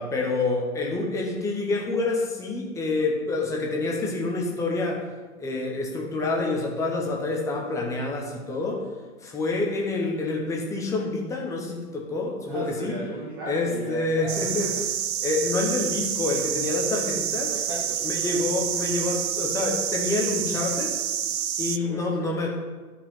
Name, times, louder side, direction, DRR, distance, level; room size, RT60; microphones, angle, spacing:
voice 1, 0.0-5.0 5.4-8.8 9.2-13.0 13.5-14.7 15.2-17.5 18.0-21.0 21.6-22.6, left 3 dB, 5° left, -1 dB, 0.9 m, -27 dB
voice 2, 12.5-14.9 17.5-18.5 21.8-22.5, right 2 dB, 15° right, -1 dB, 0.6 m, -36 dB
sound 1, 14.3-21.8, right 9 dB, 65° right, 0.7 m, -28 dB
13.0 x 5.1 x 5.5 m, 1.4 s
figure-of-eight pair, 130°, 45 cm